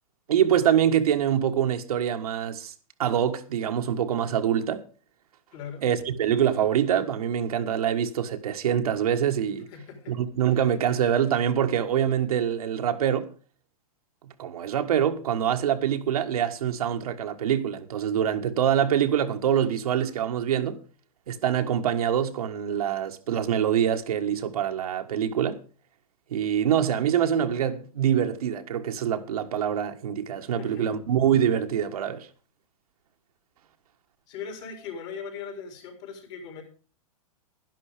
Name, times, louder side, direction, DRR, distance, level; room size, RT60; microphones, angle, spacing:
voice 1, 0.3-2.7 3.0-4.8 5.8-9.7 10.1-13.3 14.2-20.8 21.3-25.6 26.3-32.3, right 9 dB, 80° right, 1.6 m, -25 dB
voice 2, 5.5-5.8 9.7-10.2 10.5-10.6 30.6-30.9 34.3-36.6, left 6 dB, 45° left, 4.5 m, -39 dB
11.5 x 11.0 x 5.1 m
hypercardioid pair, 140°, 19 cm